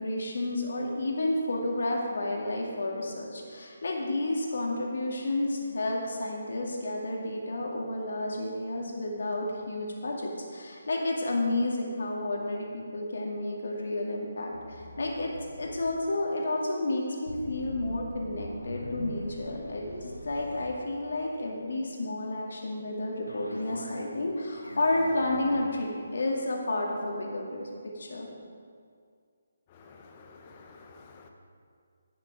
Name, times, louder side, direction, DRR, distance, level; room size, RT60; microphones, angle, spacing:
voice 1, 0.0-15.3 15.6-27.7 28.0-28.3, left 2 dB, 60° left, -1 dB, 2.2 m, -31 dB
sound 1, 14.5-15.9 17.3-21.5 23.3-24.2 24.5-25.7, equal, 85° left, 1.3 m, -42 dB
voice 2, 29.7-31.3, left 4 dB, 30° left, 3 dB, 1.2 m, -51 dB
11.5 x 9.0 x 4.8 m, 2.2 s
figure-of-eight pair, 145°, 0 cm